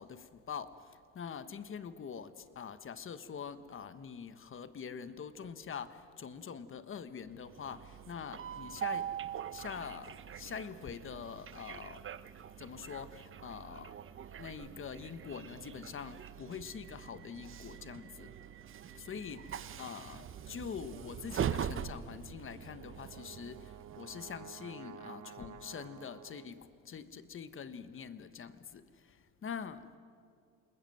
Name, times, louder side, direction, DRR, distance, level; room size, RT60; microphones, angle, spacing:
voice 1, 0.0-9.1 9.5-12.1 12.6-14.0 14.4-18.4 18.9-30.0, left 7 dB, 35° left, 1.3 m, -45 dB
Train, 7.3-24.6, right 9 dB, 35° right, 0.8 m, -43 dB
Brass instrument, 22.5-26.7, right 8 dB, 55° right, 1.2 m, -52 dB
28.5 x 20.0 x 7.7 m
cardioid pair, 110°, 35 cm